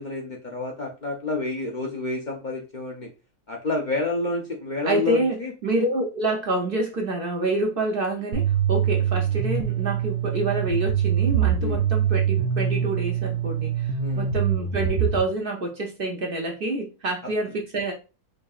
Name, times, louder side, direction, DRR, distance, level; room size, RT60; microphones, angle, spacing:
voice 1, 0.0-3.1 3.5-5.5 11.6-11.8 14.0-14.3, left 3 dB, 65° left, 0.4 m, -29 dB
voice 2, 4.8-13.9 14.2-17.9, right 2 dB, 60° right, 0.6 m, -27 dB
sound 1, 8.3-15.2, right 8 dB, 85° right, 1.1 m, -24 dB
5.0 x 2.7 x 2.4 m
omnidirectional pair, 1.6 m